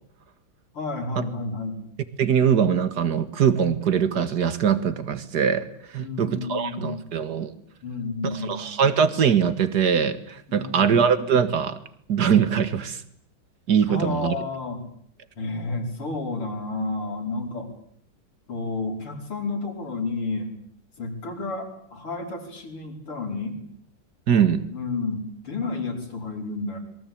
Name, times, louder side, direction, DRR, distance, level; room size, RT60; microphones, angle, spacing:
voice 1, 0.7-1.8 6.0-7.0 7.8-8.6 10.5-10.9 13.9-14.8 15.4-17.7 18.5-20.6 21.0-23.6 24.7-26.8, left 3 dB, 80° left, 3 dB, 5.9 m, -31 dB
voice 2, 2.2-7.5 8.2-11.8 12.1-13.0 13.7-14.3 24.3-24.6, right 7 dB, 50° right, 13 dB, 2.1 m, -22 dB
27.5 x 22.5 x 8.8 m, 0.65 s
omnidirectional pair, 2.4 m